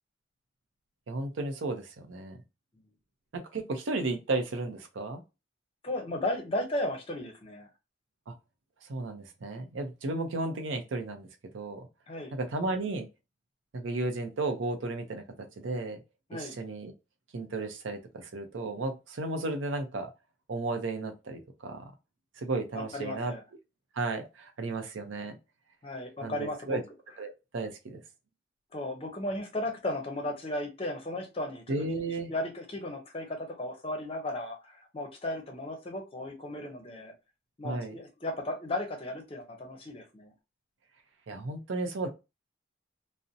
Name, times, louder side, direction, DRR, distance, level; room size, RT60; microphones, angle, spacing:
voice 1, 1.1-2.4 3.3-5.2 8.3-8.4 8.9-11.3 11.5-11.9 12.3-13.1 13.7-15.2 15.6-16.0 16.3-16.9 17.3-20.1 20.5-21.9 22.4-23.3 23.9-25.3 26.2-26.8 27.2-28.0 31.7-32.3 37.6-37.9 41.3-42.1, right 2 dB, 80° right, 0.5 m, -34 dB
voice 2, 5.8-7.7 12.1-12.3 16.3-16.6 22.7-23.4 25.8-26.8 28.7-37.1 37.6-40.3, left 1 dB, 30° left, 0.6 m, -35 dB
2.5 x 2.0 x 2.6 m
head